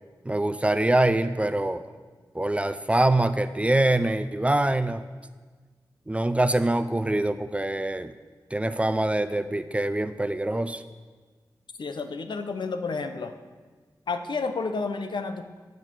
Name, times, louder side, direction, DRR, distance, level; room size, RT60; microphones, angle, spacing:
voice 1, 0.3-1.8 2.3-5.0 6.1-8.1 8.5-10.8, right 1 dB, 15° right, 12 dB, 0.5 m, -24 dB
voice 2, 11.8-13.4 14.1-15.4, left 4 dB, 80° left, 8 dB, 0.9 m, -30 dB
14.0 x 6.5 x 7.5 m, 1.4 s
wide cardioid pair, 105°, 8 cm